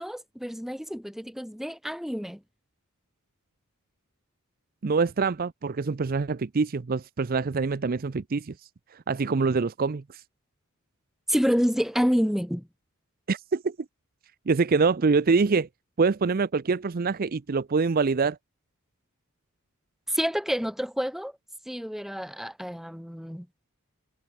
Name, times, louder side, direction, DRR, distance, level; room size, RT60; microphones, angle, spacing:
voice 1, 0.0-2.4 11.3-12.7 20.1-21.3 21.7-23.5, equal, ahead, 2.3 m, -28 dB
voice 2, 4.8-8.5 9.1-10.2 13.3-13.7 14.5-15.7 16.0-18.4, right 4 dB, 40° right, 0.5 m, -25 dB
head